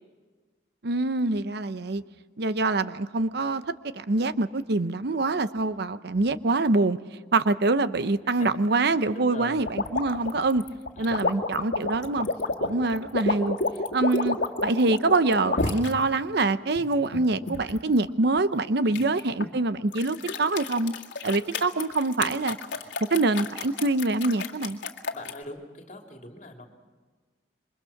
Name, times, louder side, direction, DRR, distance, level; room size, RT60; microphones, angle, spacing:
voice 1, 0.8-2.0 2.4-3.6 3.9-7.0 7.3-10.6 11.0-12.3 12.6-13.6 13.9-20.9 21.2-22.6 23.1-24.8, right 3 dB, 65° right, 13 dB, 0.8 m, -25 dB
voice 2, 8.2-9.6 11.0-11.2 12.7-12.8 18.8-19.0 25.1-26.7, left 2 dB, 45° left, 3 dB, 3.2 m, -43 dB
sound 1, 9.7-15.9 16.5-17.8 18.9-19.5 19.9-25.4, left 3 dB, 80° left, 1.9 m, -30 dB
27.5 x 24.0 x 5.9 m, 1.4 s
head